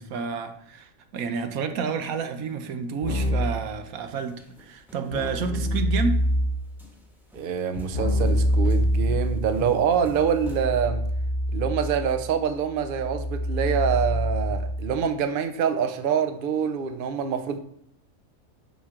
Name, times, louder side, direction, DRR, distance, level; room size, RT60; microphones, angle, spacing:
voice 1, 0.0-6.2, right 5 dB, 85° right, 7 dB, 1.3 m, -30 dB
Keyboard (musical), 3.0-3.7 5.1-6.7 7.9-15.0, equal, 40° left, 1.0 m, -26 dB
sound 1, 4.1-5.5 6.1-6.3 6.8-10.6, equal, ahead, 1.1 m, -43 dB
voice 2, 7.3-11.0 11.5-17.6, right 7 dB, 50° right, 8 dB, 0.7 m, -25 dB
11.0 x 4.4 x 3.7 m, 0.67 s
omnidirectional pair, 1.4 m